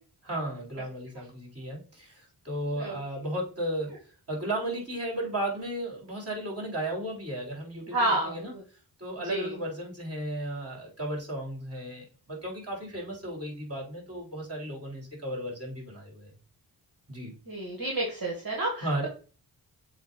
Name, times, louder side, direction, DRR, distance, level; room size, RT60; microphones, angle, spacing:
voice 1, 0.2-3.9 4.3-8.5 9.0-16.3 17.1-17.3 18.8-19.1, right 1 dB, 35° right, -2 dB, 3.4 m, -34 dB
voice 2, 7.9-8.6 9.2-9.5 17.5-19.1, right 1 dB, 50° right, -2 dB, 1.9 m, -30 dB
7.2 x 2.5 x 5.3 m, 0.38 s
cardioid pair, 60°, 44 cm